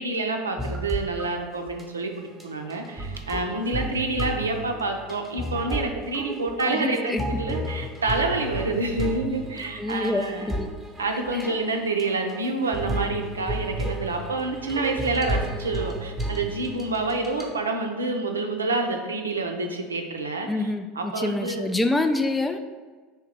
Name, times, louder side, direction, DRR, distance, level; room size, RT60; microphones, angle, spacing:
voice 1, 0.0-10.5 11.0-21.7, right 3 dB, 85° right, 3 dB, 0.4 m, -28 dB
sound 1, 0.6-1.3 1.7-1.8 2.2-17.5, right 1 dB, 10° right, 0.8 m, -33 dB
voice 2, 6.7-7.2 9.8-10.7 11.3-11.5 20.5-22.6, left 2 dB, 10° left, 7 dB, 0.3 m, -26 dB
3.4 x 2.8 x 4.6 m, 1.4 s
hypercardioid pair, 80°, 0 cm